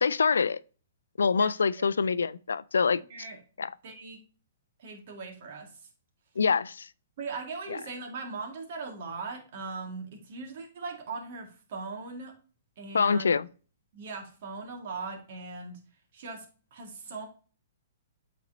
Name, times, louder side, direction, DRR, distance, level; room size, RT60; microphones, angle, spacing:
voice 1, 0.0-0.6 1.2-3.0 3.6-3.7 6.4-6.9 12.9-13.5, left 5 dB, 80° left, 0.3 m, -25 dB
voice 2, 1.3-1.9 3.1-3.4 3.8-4.2 4.8-5.9 7.2-12.3 12.8-13.3 13.9-15.8 16.1-16.5 16.7-17.3, right 4 dB, 55° right, 1.9 m, -39 dB
8.3 x 4.2 x 2.7 m
hypercardioid pair, 125°, 0 cm